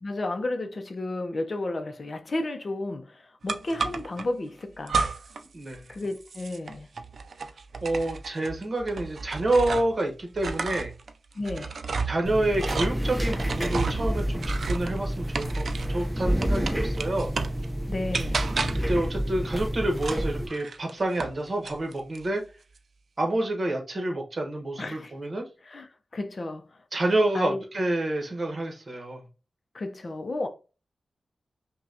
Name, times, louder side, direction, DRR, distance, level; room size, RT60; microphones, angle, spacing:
voice 1, 0.0-5.0 5.9-6.9 11.3-11.8 17.9-18.4 24.8-25.1 25.6-26.6 27.3-27.6 29.7-30.5, left 2 dB, 45° left, 0.6 m, -32 dB
sound 1, 3.5-4.3 4.9-5.5 5.7-10.0 10.3-16.0 16.4-17.6 18.1-19.0 20.0-21.4 21.6-22.2, right 4 dB, 70° right, 0.4 m, -32 dB
voice 2, 5.5-5.9 7.8-10.9 12.0-17.3 18.9-22.4 23.2-25.5 26.9-29.2, right 1 dB, 40° right, 1.1 m, -28 dB
sound 2, 12.2-20.5, equal, 5° right, 0.7 m, -29 dB
5.5 x 2.3 x 2.7 m
wide cardioid pair, 110°, 0 cm